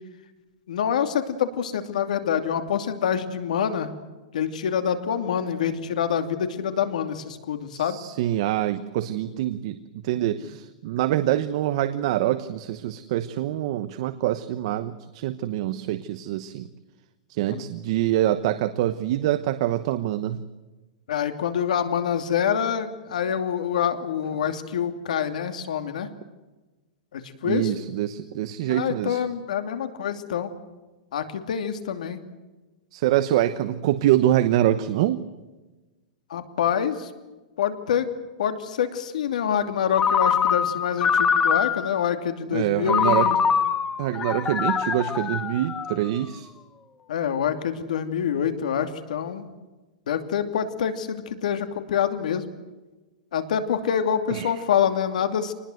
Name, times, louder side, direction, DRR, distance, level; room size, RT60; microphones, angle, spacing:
voice 1, 0.7-3.9 4.3-8.0 10.4-10.5 17.5-17.6 21.1-26.1 27.1-27.7 28.7-30.5 31.1-32.2 36.3-37.1 37.6-38.1 38.4-43.4 47.1-49.5 50.1-52.5 53.3-55.5, left 8 dB, 80° left, 8 dB, 2.7 m, -26 dB
voice 2, 7.7-16.7 17.3-20.4 27.4-29.2 32.9-35.2 42.5-43.3 44.0-46.5 54.3-54.5, right 13 dB, 45° right, 11 dB, 1.0 m, -25 dB
Ringtone, 39.9-42.0 42.9-46.2, left 7 dB, 15° left, 1.0 m, -23 dB
26.5 x 20.0 x 7.9 m, 1.2 s
supercardioid pair, 170°, 4 cm